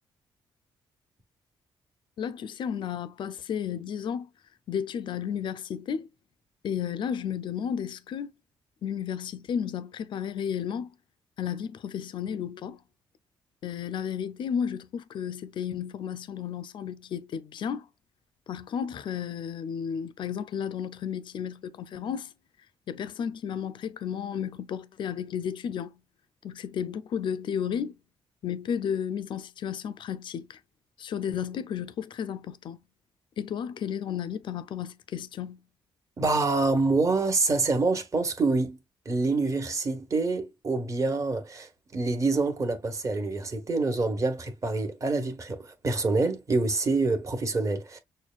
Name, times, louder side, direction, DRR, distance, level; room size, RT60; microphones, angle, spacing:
voice 1, 2.2-4.3 4.7-6.1 6.6-8.3 8.8-10.9 11.4-12.8 13.6-17.9 18.5-22.3 22.9-26.0 26.4-28.0 28.4-30.6 31.0-32.8 33.4-35.6, left 8 dB, 60° left, 0.5 m, -33 dB
voice 2, 36.2-38.8 39.0-48.0, right 3 dB, 35° right, 1.3 m, -26 dB
6.3 x 2.2 x 2.4 m
cardioid pair, 100°, 9 cm